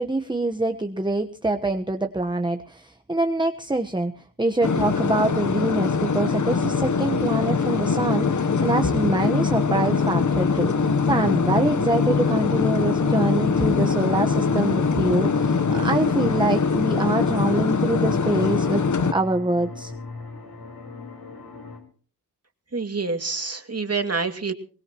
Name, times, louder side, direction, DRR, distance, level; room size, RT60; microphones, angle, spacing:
voice 1, 0.0-4.1 4.4-18.8 19.1-19.9, right 2 dB, 10° right, 5 dB, 1.2 m, -25 dB
sound 1, 4.6-19.1, left 5 dB, 50° left, 1.0 m, -22 dB
sound 2, 15.5-21.8, left 3 dB, 85° left, 4.5 m, -39 dB
voice 2, 22.7-24.5, right 4 dB, 40° right, 6 dB, 2.4 m, -27 dB
22.5 x 19.5 x 3.0 m, 0.42 s
cardioid pair, 40°, 37 cm